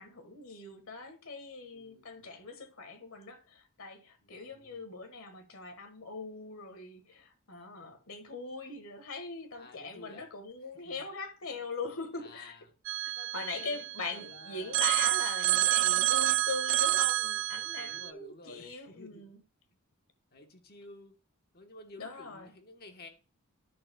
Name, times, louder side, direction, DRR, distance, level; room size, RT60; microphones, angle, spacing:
voice 1, 0.0-12.6 13.0-19.4 22.0-22.5, left 3 dB, 75° left, 1.5 m, -41 dB
voice 2, 1.7-2.3 4.2-4.8 9.5-10.2 10.8-11.1 11.5-11.6 12.2-12.7 13.1-14.9 15.7-16.0 17.8-19.3 20.3-21.1 21.5-23.1, left 2 dB, 45° left, 1.2 m, -53 dB
Telephone, 12.9-14.3 14.7-18.1, right 13 dB, 60° right, 0.3 m, -28 dB
12.0 x 6.6 x 2.3 m
head